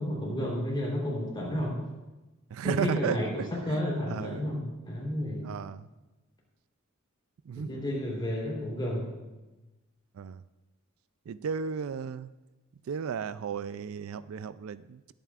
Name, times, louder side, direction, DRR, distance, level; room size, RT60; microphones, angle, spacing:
voice 1, 0.0-1.8 2.6-5.5 7.5-9.1, equal, 20° left, -3 dB, 3.5 m, -31 dB
voice 2, 2.5-4.6 5.4-5.9 7.4-7.7 10.1-10.4 11.3-12.3 12.9-15.1, right 6 dB, 75° right, 15 dB, 0.4 m, -34 dB
20.0 x 9.0 x 2.5 m, 1.1 s
head